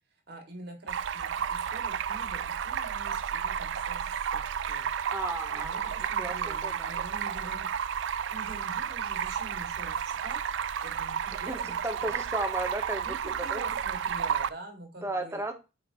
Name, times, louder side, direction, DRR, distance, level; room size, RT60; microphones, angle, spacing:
voice 1, 0.3-4.9 5.5-7.7 8.3-10.4 10.8-12.2 13.0-15.4, right 2 dB, 55° right, 3 dB, 2.2 m, -46 dB
Stream, 0.9-14.5, right 8 dB, 70° right, 0.4 m, -32 dB
voice 2, 5.1-6.9 11.3-11.6 11.8-13.1 13.4-13.6 15.0-15.5, right 2 dB, 15° right, 5 dB, 1.0 m, -34 dB
8.3 x 5.1 x 3.0 m, 0.28 s
head